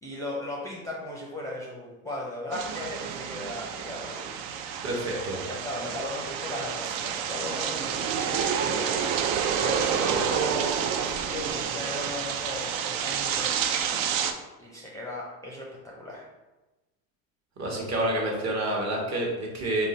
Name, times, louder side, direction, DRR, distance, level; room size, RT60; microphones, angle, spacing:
voice 1, 0.0-4.3 5.1-9.2 9.6-13.5 14.6-16.3, left 1 dB, 10° left, -4 dB, 0.5 m, -37 dB
sound 1, 2.5-14.3, right 7 dB, 70° right, 0.5 m, -29 dB
voice 2, 4.8-5.4 17.6-19.9, right 1 dB, 40° right, -2 dB, 1.1 m, -28 dB
3.7 x 2.0 x 3.9 m, 1.1 s
supercardioid pair, 90°, 42 cm